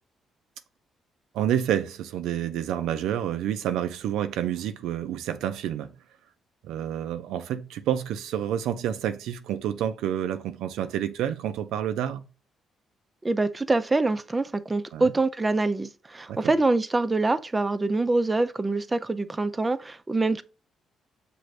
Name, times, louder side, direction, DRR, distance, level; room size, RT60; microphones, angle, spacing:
voice 1, 1.3-5.9 6.6-12.3 14.9-15.1 16.3-16.4, right 10 dB, 90° right, 0.4 m, -29 dB
voice 2, 13.2-20.4, right 2 dB, 20° right, 0.4 m, -25 dB
6.2 x 2.5 x 3.2 m
cardioid pair, 90°, 0 cm